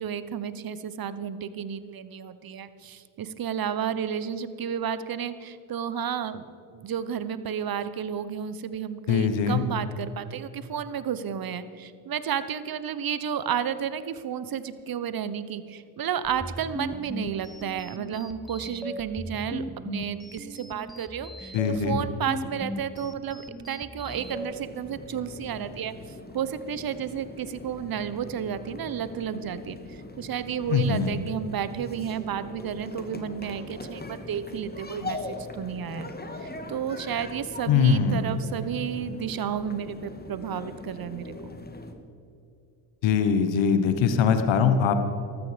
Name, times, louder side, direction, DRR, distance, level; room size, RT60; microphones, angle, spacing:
voice 1, 0.0-36.1 36.4-41.3, right 8 dB, 50° right, 14 dB, 1.1 m, -32 dB
voice 2, 9.1-9.6 21.5-22.0 30.7-31.1 37.7-38.2 43.0-44.9, left 6 dB, 75° left, 8 dB, 1.3 m, -22 dB
sound 1, 16.2-24.5, equal, ahead, 0.9 m, -38 dB
sound 2, 24.1-41.9, left 2 dB, 20° left, 2.0 m, -41 dB
14.5 x 13.0 x 5.2 m, 2.6 s
supercardioid pair, 55°, 45 cm